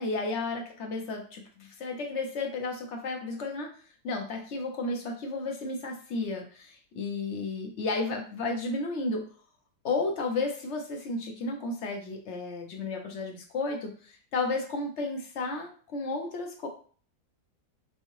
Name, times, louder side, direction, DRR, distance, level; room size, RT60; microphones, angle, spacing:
voice 1, 0.0-3.7 4.0-9.2 9.8-16.7, left 3 dB, 60° left, 2 dB, 0.8 m, -33 dB
5.2 x 2.1 x 3.1 m, 0.43 s
omnidirectional pair, 1.8 m